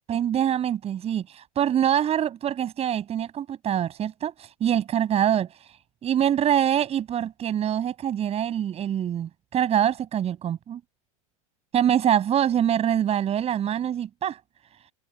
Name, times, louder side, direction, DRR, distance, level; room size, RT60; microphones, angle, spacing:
voice 1, 0.1-5.5 6.0-10.8 11.7-14.4, right 10 dB, 35° right, 7.6 m, -24 dB
open air
hypercardioid pair, 95°, 18 cm